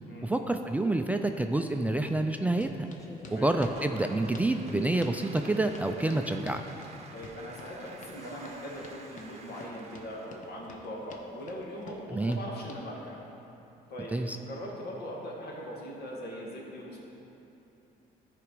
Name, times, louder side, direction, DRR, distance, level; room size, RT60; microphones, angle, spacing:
voice 1, 0.2-2.9 3.3-6.6 12.1-12.4 14.1-14.4, right 2 dB, 10° right, 5 dB, 0.4 m, -28 dB
sound 1, 2.6-12.8, left 3 dB, 50° left, 0.9 m, -50 dB
sound 2, 3.0-4.6 4.9-5.0 5.6-6.0 7.7-9.7, left 1 dB, 20° left, 1.4 m, -54 dB
Applause / Crowd, 3.2-10.6, right 4 dB, 40° right, 0.7 m, -50 dB
voice 2, 7.1-13.2 13.9-17.0, equal, 70° left, -3 dB, 2.2 m, -41 dB
13.0 x 5.0 x 4.7 m, 2.9 s
cardioid pair, 110°, 17 cm